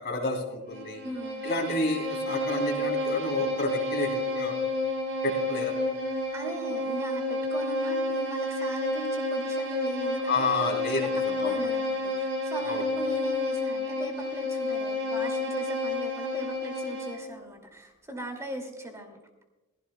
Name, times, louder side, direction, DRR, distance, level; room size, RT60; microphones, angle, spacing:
voice 1, 0.0-1.0 1.4-4.5 5.2-5.7 10.3-11.6 12.5-12.8, left 2 dB, 50° left, 0 dB, 3.4 m, -30 dB
Bowed string instrument, 0.7-17.3, left 1 dB, 55° right, 4.0 m, -30 dB
voice 2, 1.0-1.5 6.3-10.4 10.9-19.2, right 1 dB, 15° right, 3 dB, 2.4 m, -39 dB
19.5 x 16.0 x 2.3 m, 1.1 s
head